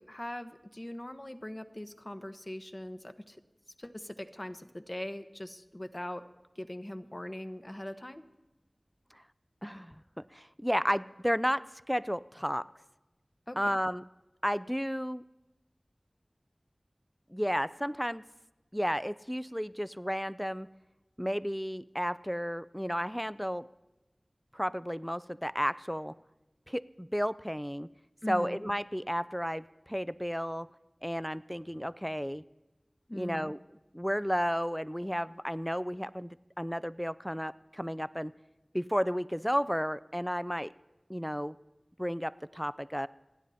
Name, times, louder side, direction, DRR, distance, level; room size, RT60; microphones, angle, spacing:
voice 1, 0.0-3.4 3.8-6.2 6.6-8.2 13.5-13.6 28.2-28.6 33.1-33.5, left 1 dB, 35° left, 8 dB, 1.0 m, -41 dB
voice 2, 9.6-10.0 10.3-12.7 13.6-14.0 14.4-15.2 17.3-18.2 18.7-20.7 21.2-23.7 24.5-26.1 26.7-27.9 28.3-30.7 31.0-32.4 33.1-33.6 33.9-38.3 38.7-40.7 41.1-41.6 42.0-43.1, equal, ahead, 17 dB, 0.4 m, -32 dB
29.0 x 9.9 x 4.2 m, 1.1 s
wide cardioid pair, 45°, 0 cm